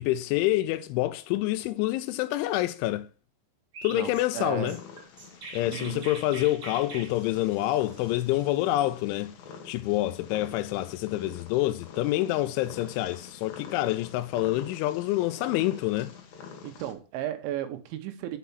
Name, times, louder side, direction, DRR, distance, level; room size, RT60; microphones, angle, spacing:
voice 1, 0.0-3.1 3.8-4.8 5.5-9.3 9.7-16.1, left 16 dB, 90° left, 3.0 m, -27 dB
Chirp tweet, 3.7-8.9, right 2 dB, 40° right, 2.0 m, -44 dB
voice 2, 3.9-4.8 5.7-6.1 16.6-18.4, right 12 dB, 80° right, 3.3 m, -35 dB
Purr, 4.7-16.9, left 6 dB, 60° left, 2.8 m, -47 dB
7.3 x 5.8 x 7.0 m
omnidirectional pair, 5.4 m